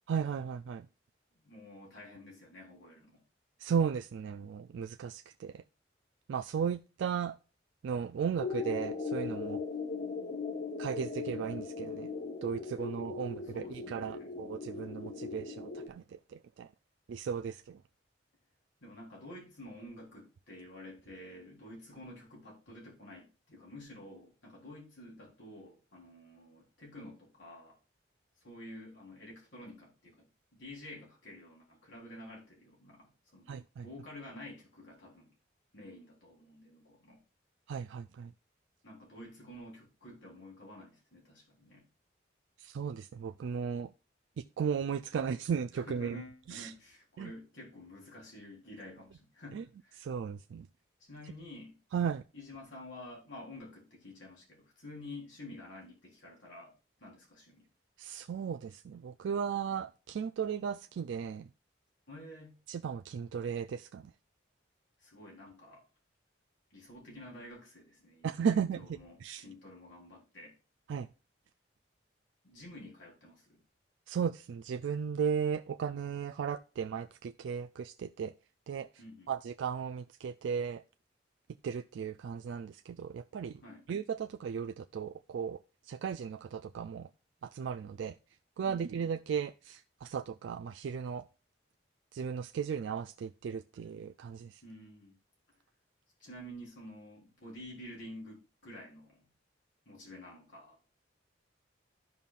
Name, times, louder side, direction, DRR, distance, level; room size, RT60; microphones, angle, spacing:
voice 1, 0.1-0.9 3.6-5.6 6.3-7.4 7.8-9.6 10.8-12.1 12.4-16.7 17.1-17.8 33.5-33.9 37.7-38.3 42.6-43.9 44.4-46.2 46.5-46.7 47.2-47.3 49.5-49.6 50.0-50.7 51.9-52.2 58.0-61.5 62.7-64.1 68.2-69.4 70.9-71.1 74.1-78.3 78.7-78.9 79.3-80.8 81.6-83.6 83.9-87.1 87.4-88.2 88.6-91.3 92.1-94.6, right 7 dB, 75° right, 0.3 m, -36 dB
voice 2, 1.4-3.2 13.5-14.3 18.8-27.8 28.4-35.3 35.7-37.2 38.8-41.9 45.7-50.1 51.0-51.8 52.3-57.7 62.1-62.6 65.0-65.8 66.7-70.6 72.4-73.6 79.0-79.3 83.6-83.8 88.6-88.9 94.6-95.2 96.2-99.2 99.9-100.8, left 1 dB, 80° left, 3.6 m, -50 dB
sound 1, 8.4-15.9, left 4 dB, 35° left, 0.6 m, -39 dB
13.0 x 5.4 x 2.4 m
head